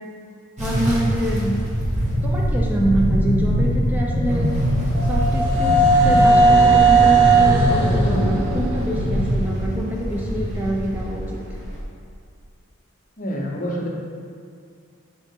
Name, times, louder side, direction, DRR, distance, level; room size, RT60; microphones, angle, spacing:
voice 1, 0.6-1.6 2.2-4.5 5.0-11.4, right 1 dB, 10° right, -3 dB, 0.5 m, -25 dB
sound 1, 0.6-11.8, equal, 30° right, 1.3 m, -22 dB
sound 2, 4.1-10.0, right 3 dB, 85° right, 1.1 m, -18 dB
voice 2, 13.2-13.9, equal, 35° left, -1 dB, 0.7 m, -27 dB
7.7 x 4.1 x 3.7 m, 2.3 s
head